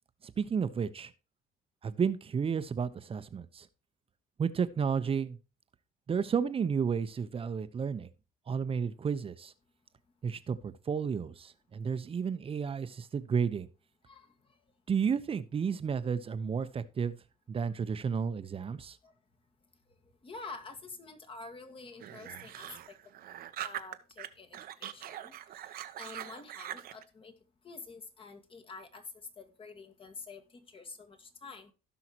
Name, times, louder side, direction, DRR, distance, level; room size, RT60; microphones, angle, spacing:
voice 1, 0.2-1.1 1.8-3.7 4.4-5.4 6.1-8.1 8.5-9.5 10.2-13.7 14.9-17.2 17.5-19.0, right 6 dB, 35° right, 0.9 m, -32 dB
voice 2, 20.2-23.0 23.6-25.3 25.6-27.3 27.6-29.0 29.4-31.7, left 4 dB, 30° left, 1.8 m, -48 dB
sound 1, 22.0-24.3 24.5-27.0, right 11 dB, 60° right, 0.9 m, -42 dB
16.5 x 5.7 x 3.0 m
cardioid pair, 110°, 17 cm